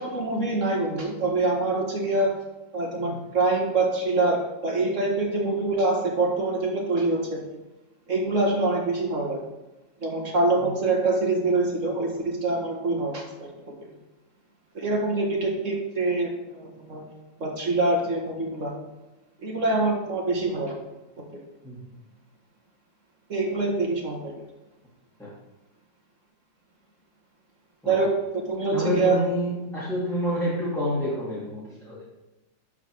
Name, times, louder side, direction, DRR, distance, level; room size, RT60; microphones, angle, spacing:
voice 1, 0.0-2.3 2.7-7.4 8.1-9.4 10.0-13.5 14.7-17.0 17.4-18.7 19.4-20.7 21.2-21.4 23.3-24.3 27.9-28.1 28.5-29.2, right 2 dB, 40° right, 0 dB, 2.0 m, -25 dB
voice 2, 28.7-32.1, equal, ahead, -10 dB, 2.6 m, -28 dB
12.5 x 4.8 x 4.8 m, 1.0 s
omnidirectional pair, 2.1 m